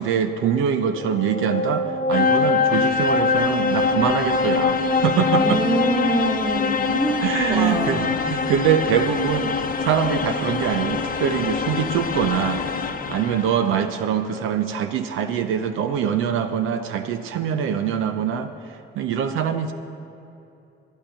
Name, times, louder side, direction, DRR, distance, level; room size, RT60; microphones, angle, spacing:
voice 1, 0.0-5.6 7.2-9.5 9.8-12.6 13.1-18.5 19.0-19.7, right 8 dB, 85° right, 8 dB, 0.6 m, -23 dB
sound 1, 1.0-13.8, left 4 dB, 45° left, 0.7 m, -23 dB
voice 2, 5.4-8.4, right 3 dB, 20° right, 4 dB, 1.3 m, -26 dB
11.5 x 10.5 x 5.6 m, 2.7 s
cardioid pair, 90°, 20 cm